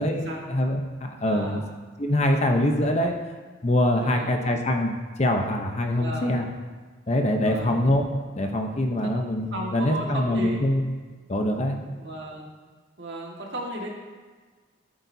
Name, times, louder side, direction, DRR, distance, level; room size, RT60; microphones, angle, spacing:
voice 1, 0.0-1.6 2.0-3.1 3.6-6.5 7.1-8.0 8.4-10.9 11.3-11.8, left 1 dB, 35° left, 3 dB, 0.8 m, -24 dB
voice 2, 1.2-1.6 4.0-4.4 6.0-6.3 7.4-7.9 9.0-9.1 9.5-10.6 11.8-12.5 13.0-13.9, right 1 dB, 60° right, -2 dB, 1.9 m, -35 dB
13.0 x 8.7 x 2.8 m, 1.4 s
head